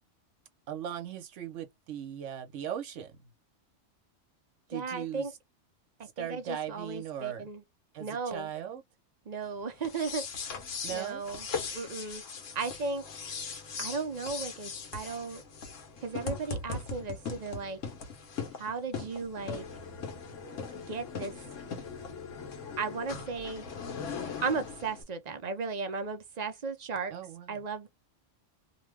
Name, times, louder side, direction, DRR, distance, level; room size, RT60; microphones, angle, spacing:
voice 1, 0.7-3.2 4.7-5.3 6.2-7.5 7.9-8.8 10.8-11.2 27.1-27.6, right 10 dB, 75° right, 1.1 m, -38 dB
voice 2, 4.7-5.3 6.2-7.6 8.0-8.5 9.3-10.3 10.9-11.5 11.7-12.2 12.5-13.0 13.8-15.4 16.0-17.8 18.6-19.6 20.7-21.3 22.8-23.6 24.4-27.1 27.5-27.9, right 4 dB, 45° right, 0.6 m, -35 dB
sound 1, 9.8-25.0, left 5 dB, 85° left, 1.2 m, -39 dB
2.8 x 2.2 x 3.2 m
omnidirectional pair, 1.3 m